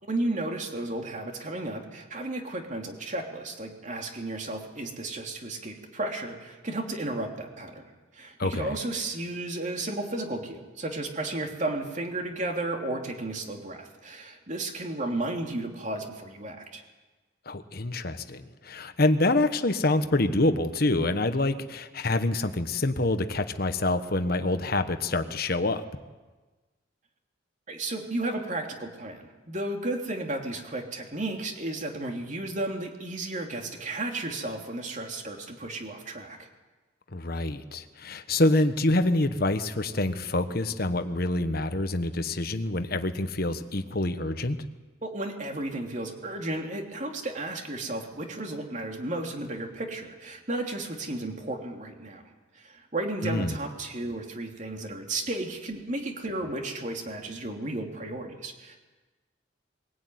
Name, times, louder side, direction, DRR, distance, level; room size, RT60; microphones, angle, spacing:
voice 1, 0.0-16.8 27.7-36.5 45.0-52.2 52.5-58.8, right 2 dB, 40° right, 3 dB, 3.0 m, -33 dB
voice 2, 8.4-8.8 17.5-25.8 37.1-44.6 53.2-53.6, left 2 dB, 50° left, 9 dB, 1.3 m, -26 dB
22.5 x 17.0 x 9.4 m, 1.3 s
head